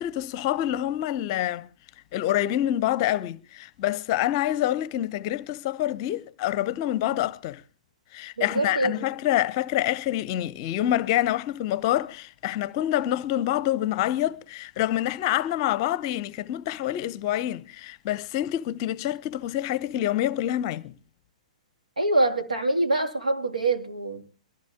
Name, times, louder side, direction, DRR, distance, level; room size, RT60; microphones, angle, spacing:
voice 1, 0.0-1.7 2.1-7.6 8.1-20.9, left 13 dB, 35° left, 0.7 m, -27 dB
voice 2, 8.4-8.9 22.0-24.2, right 2 dB, 75° right, 2.5 m, -25 dB
23.0 x 14.5 x 3.5 m
figure-of-eight pair, 115°, 4 cm